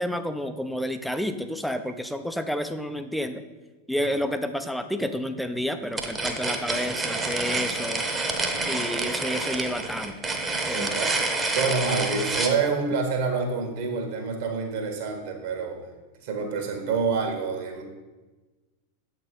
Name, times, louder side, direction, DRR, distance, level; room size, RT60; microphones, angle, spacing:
voice 1, 0.0-3.4 3.9-8.1 8.7-10.2 10.7-11.0, equal, ahead, 8 dB, 0.4 m, -30 dB
sound 1, 5.9-12.6, right 3 dB, 15° right, 0.9 m, -28 dB
voice 2, 10.7-11.2 11.5-15.8 16.2-17.8, right 5 dB, 55° right, 3 dB, 1.4 m, -27 dB
7.4 x 4.5 x 5.1 m, 1.2 s
figure-of-eight pair, 90°, 0 cm